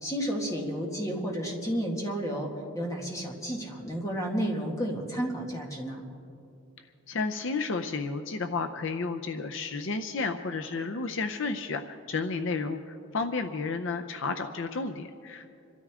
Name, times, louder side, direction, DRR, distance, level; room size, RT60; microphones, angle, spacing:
voice 1, 0.0-6.0, equal, 15° left, -1 dB, 1.9 m, -32 dB
voice 2, 7.1-15.6, left 4 dB, 55° left, 6 dB, 0.6 m, -32 dB
26.5 x 13.0 x 3.7 m, 2.6 s
head